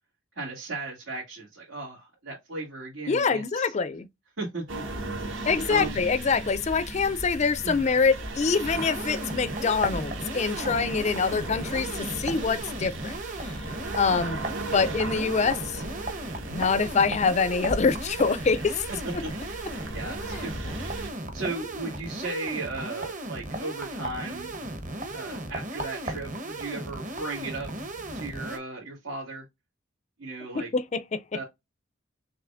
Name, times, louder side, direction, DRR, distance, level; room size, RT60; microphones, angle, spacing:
voice 1, 0.3-3.7 4.4-4.6 5.7-6.0 7.6-8.0 18.9-19.5 19.9-20.9 21.3-24.5 25.1-27.7 28.1-29.4 30.2-30.7 31.3-31.4, right 2 dB, 90° right, 2.4 m, -36 dB
voice 2, 3.1-4.1 5.5-13.2 14.0-14.4 14.7-15.8 16.5-18.8 30.5-31.2, left 5 dB, 35° left, 0.4 m, -25 dB
sound 1, 4.7-21.1, right 2 dB, 65° right, 1.4 m, -37 dB
sound 2, 8.6-28.6, right 1 dB, 40° right, 1.1 m, -36 dB
6.5 x 3.0 x 2.5 m
head